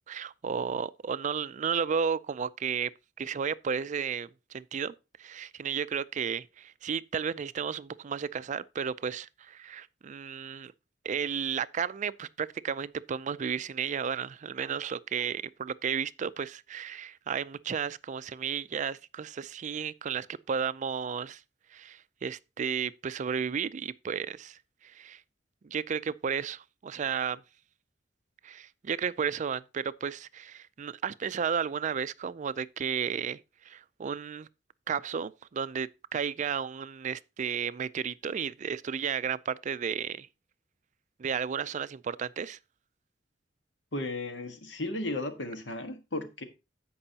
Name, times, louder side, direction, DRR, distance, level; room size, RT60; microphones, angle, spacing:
voice 1, 0.1-2.9 3.2-10.7 11.0-21.4 21.7-25.2 25.6-27.4 28.4-33.4 33.6-34.5 34.9-40.3 41.2-42.6, right 7 dB, 40° right, 0.4 m, -33 dB
voice 2, 43.9-46.4, left 2 dB, 75° left, 1.5 m, -35 dB
15.5 x 5.4 x 2.8 m
head